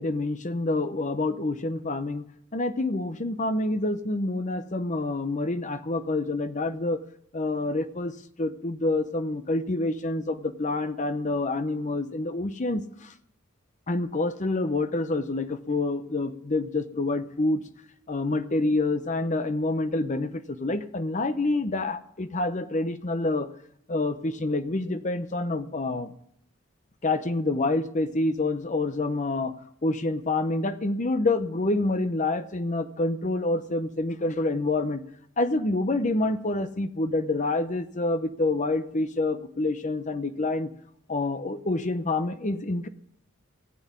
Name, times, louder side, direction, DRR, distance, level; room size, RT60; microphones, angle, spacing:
voice 1, 0.0-2.3 2.5-7.0 7.3-12.8 13.9-17.6 18.1-23.5 23.9-26.1 27.0-29.5 29.8-35.0 35.4-40.7 41.1-42.9, left 2 dB, 35° left, 11 dB, 0.8 m, -27 dB
15.5 x 7.9 x 9.4 m, 0.72 s
head